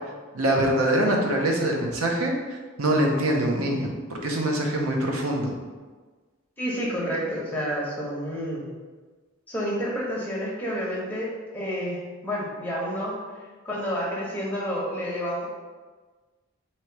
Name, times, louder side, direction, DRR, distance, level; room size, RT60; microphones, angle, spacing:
voice 1, 0.3-2.3 2.8-5.5, right 1 dB, 90° right, 1 dB, 0.7 m, -24 dB
voice 2, 6.6-8.6 9.5-13.2 13.6-15.5, equal, 10° left, -5 dB, 0.9 m, -29 dB
3.1 x 2.9 x 4.5 m, 1.4 s
head